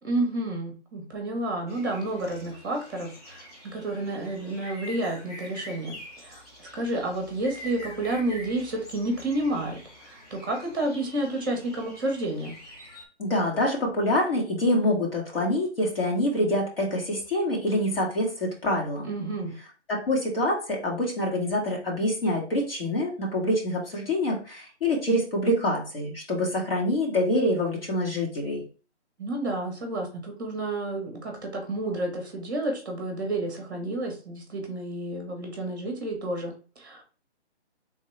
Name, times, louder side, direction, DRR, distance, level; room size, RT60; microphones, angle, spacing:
voice 1, 0.0-9.8 10.0-12.6 19.0-19.5 29.2-37.0, right 1 dB, 20° right, 2 dB, 1.2 m, -30 dB
sound 1, 1.7-13.1, left 1 dB, 35° left, 1.3 m, -46 dB
voice 2, 13.2-19.1 19.9-28.6, left 1 dB, 55° left, -2 dB, 2.1 m, -26 dB
4.1 x 3.6 x 3.3 m, 0.36 s
hypercardioid pair, 175°, 35 cm